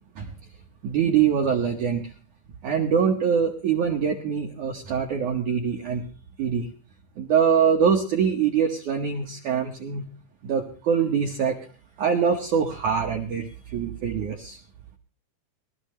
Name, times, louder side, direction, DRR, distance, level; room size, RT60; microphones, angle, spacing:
voice 1, 0.8-2.0 2.6-6.0 6.4-6.7 7.2-10.0 10.4-11.6 12.0-14.6, right 7 dB, 75° right, 1 dB, 1.8 m, -24 dB
21.5 x 13.5 x 3.2 m, 0.37 s
omnidirectional pair, 5.2 m